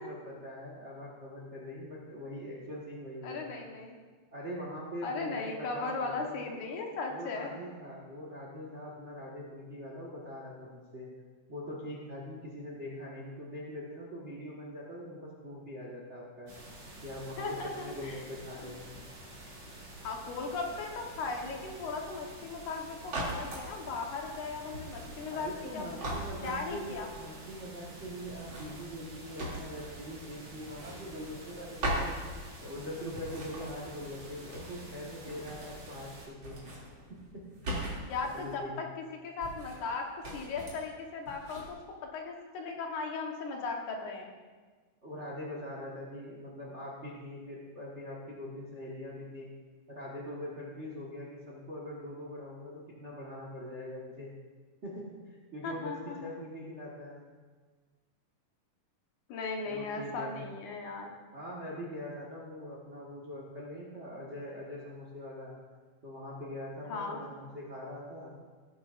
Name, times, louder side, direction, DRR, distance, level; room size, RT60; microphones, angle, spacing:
voice 1, 0.0-3.6 4.3-6.6 7.1-11.1 11.5-16.5 17.0-19.0 25.3-36.6 37.1-37.5 38.2-38.8 45.0-49.5 49.9-54.3 54.8-57.3 59.6-60.5 61.3-65.5 66.0-68.3, left 1 dB, 55° right, -3 dB, 0.7 m, -42 dB
voice 2, 3.2-4.0 5.0-7.5 17.4-18.2 18.6-18.7 20.0-26.1 26.4-27.1 38.0-41.8 42.0-44.3 55.6-56.3 59.3-61.1 66.8-67.3, left 4 dB, 70° left, 1 dB, 2.5 m, -37 dB
sound 1, 16.5-36.3, right 1 dB, 75° right, 5.3 m, -49 dB
sound 2, 23.1-23.7 24.7-25.7 26.0-27.1 28.3-30.2 30.5-31.5 31.8-32.8 33.1-34.9 35.2-36.1 36.4-38.5 39.4-39.9 40.2-40.9 41.3-41.7, right 1 dB, 40° right, 3.1 m, -40 dB
17.5 x 9.8 x 2.5 m, 1.4 s
omnidirectional pair, 3.8 m